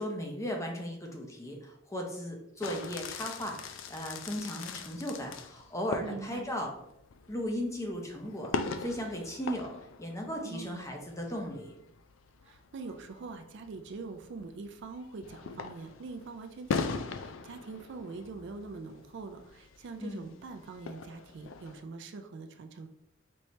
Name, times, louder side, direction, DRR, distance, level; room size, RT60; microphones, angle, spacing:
voice 1, 0.0-6.7 7.3-8.5 8.8-9.7 10.0-11.7 20.0-20.3, equal, 15° left, 1 dB, 0.6 m, -36 dB
sound 1, 2.6-21.8, left 4 dB, 70° left, 0.4 m, -41 dB
voice 2, 6.0-6.5 10.4-10.8 12.4-22.9, right 3 dB, 60° right, 6 dB, 0.4 m, -43 dB
4.4 x 3.1 x 2.7 m, 0.77 s
head